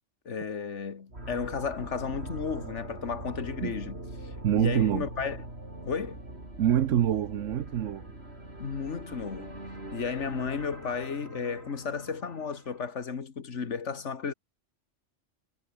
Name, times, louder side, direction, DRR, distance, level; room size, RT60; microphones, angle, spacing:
voice 1, 0.3-5.4 5.8-6.2 8.6-9.6 9.9-14.3, left 5 dB, 70° left, 1.9 m, -34 dB
sound 1, 1.1-13.0, right 1 dB, 55° right, 6.6 m, -43 dB
voice 2, 4.4-5.1 6.6-8.1, right 10 dB, 85° right, 1.2 m, -25 dB
omnidirectional pair, 1.3 m